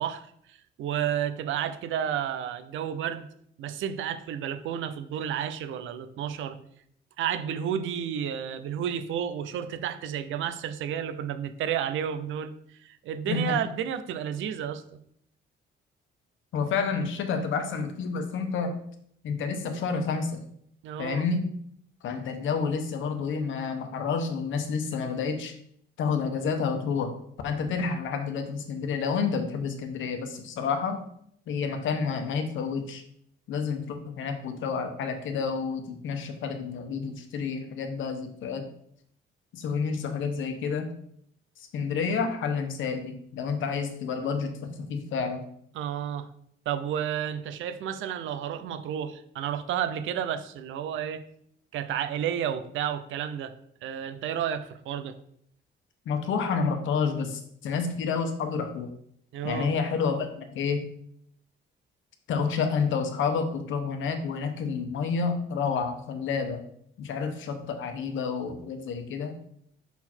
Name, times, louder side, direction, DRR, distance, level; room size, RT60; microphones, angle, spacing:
voice 1, 0.0-3.3 3.6-6.6 7.2-12.5 12.8-14.8 20.8-21.3 45.7-46.3 46.7-51.2 51.7-53.5 53.8-55.1 59.3-59.7, right 9 dB, 80° right, 10 dB, 0.6 m, -31 dB
voice 2, 13.3-13.6 16.5-18.8 19.2-20.4 21.0-21.5 22.0-25.5 26.0-27.1 27.4-31.0 31.5-33.0 33.5-38.7 39.5-40.9 41.7-45.5 56.1-58.9 59.4-60.9 62.3-66.6 67.0-69.3, left 5 dB, 75° left, 6 dB, 1.0 m, -29 dB
5.8 x 4.2 x 4.4 m, 0.68 s
cardioid pair, 90°, 20 cm